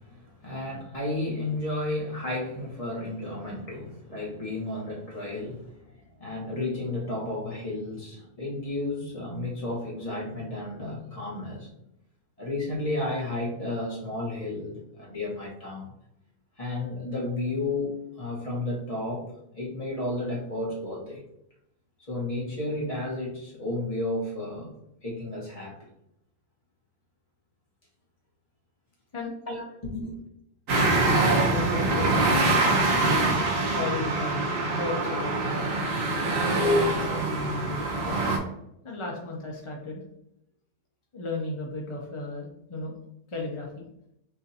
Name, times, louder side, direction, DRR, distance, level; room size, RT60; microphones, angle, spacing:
voice 1, 0.0-11.7 12.4-15.9 16.6-19.3 19.5-21.2 22.1-24.7 25.0-25.8 29.5-30.1, left 2 dB, 25° left, -4 dB, 1.1 m, -32 dB
sound 1, 30.7-38.4, right 2 dB, 60° right, 1.3 m, -24 dB
voice 2, 31.2-32.3 33.7-35.8 36.8-38.5 38.8-40.0 41.1-43.0 43.3-43.8, left 3 dB, 50° left, -1 dB, 0.3 m, -34 dB
6.0 x 2.6 x 2.8 m, 0.79 s
omnidirectional pair, 1.7 m